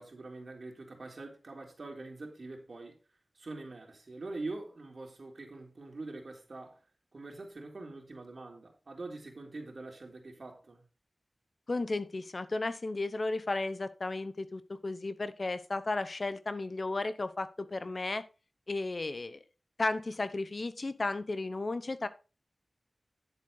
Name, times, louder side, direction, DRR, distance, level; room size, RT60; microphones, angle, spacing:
voice 1, 0.0-3.0 3.3-6.8 7.1-10.8, right 2 dB, 65° right, 3.6 m, -44 dB
voice 2, 11.7-18.2 18.7-19.4 19.8-22.1, left 2 dB, 50° left, 1.0 m, -34 dB
10.5 x 8.0 x 3.9 m
wide cardioid pair, 85°, 0 cm